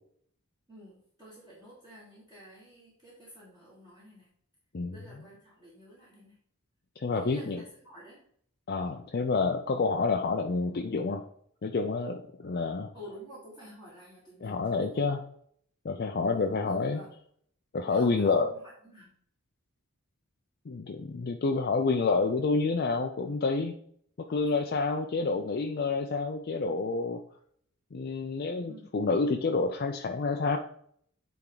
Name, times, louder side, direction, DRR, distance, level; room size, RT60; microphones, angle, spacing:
voice 1, 0.7-4.3 4.9-6.4 7.1-8.2 12.9-15.0 16.2-17.1 17.8-19.1 24.3-24.6 28.7-28.9, equal, 20° right, -8 dB, 1.7 m, -50 dB
voice 2, 7.0-7.6 8.7-11.2 11.6-12.9 14.4-15.2 15.8-17.0 17.7-18.5 20.7-23.7 24.3-27.2 27.9-30.6, left 4 dB, 45° left, 4 dB, 0.4 m, -28 dB
8.7 x 3.5 x 3.9 m, 0.64 s
head